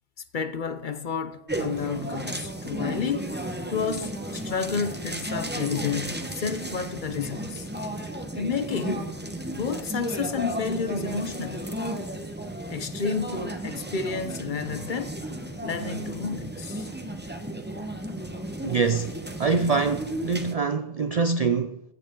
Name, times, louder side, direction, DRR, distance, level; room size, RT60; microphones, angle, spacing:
voice 1, 0.3-3.3 3.7-7.7 8.3-9.1 9.5-11.6 12.7-15.2 15.6-16.9, left 5 dB, 50° left, 0.8 m, -30 dB
sound 1, 1.5-20.5, right 1 dB, 10° right, 0.9 m, -34 dB
voice 2, 18.6-21.8, right 4 dB, 55° right, 0.4 m, -25 dB
15.5 x 9.0 x 3.8 m
omnidirectional pair, 1.2 m